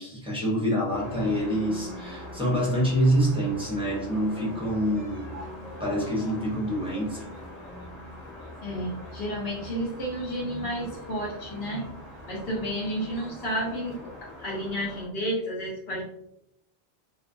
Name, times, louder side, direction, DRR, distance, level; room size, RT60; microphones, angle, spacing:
voice 1, 0.0-5.4 5.8-7.2, equal, 5° right, -5 dB, 0.5 m, -26 dB
sound 1, 0.9-15.1, left 1 dB, 40° left, 0.9 m, -42 dB
voice 2, 8.6-11.8 12.3-14.1 14.4-16.0, equal, 65° left, -6 dB, 0.9 m, -31 dB
2.3 x 2.2 x 2.5 m, 0.78 s
omnidirectional pair, 1.1 m